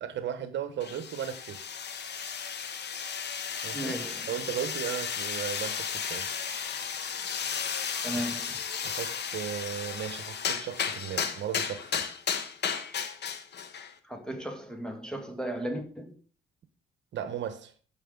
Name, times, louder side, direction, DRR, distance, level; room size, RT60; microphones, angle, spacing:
voice 1, 0.0-1.6 3.6-3.9 4.3-6.3 8.8-12.0 17.1-17.7, right 9 dB, 65° right, 1.1 m, -36 dB
sound 1, 0.8-13.9, left 7 dB, 60° left, 1.3 m, -34 dB
voice 2, 3.7-4.3 8.0-8.6 14.0-16.1, right 1 dB, 5° left, 2.0 m, -35 dB
15.5 x 5.9 x 3.9 m
cardioid pair, 90°, 20 cm